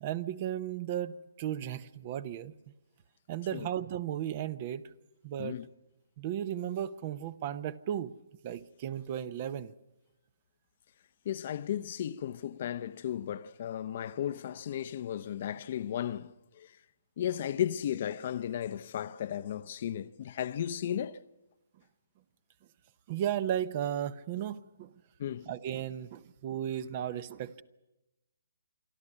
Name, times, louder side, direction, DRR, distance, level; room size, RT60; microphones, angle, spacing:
voice 1, 0.0-2.5 3.3-4.9 5.2-5.6 6.2-8.1 8.4-9.7 23.1-24.9 25.5-27.6, right 10 dB, 35° right, 0.8 m, -35 dB
voice 2, 11.2-16.8 17.2-21.2 25.2-25.5, left 10 dB, 45° left, 0.7 m, -35 dB
27.0 x 12.0 x 9.9 m
hypercardioid pair, 150°, 0 cm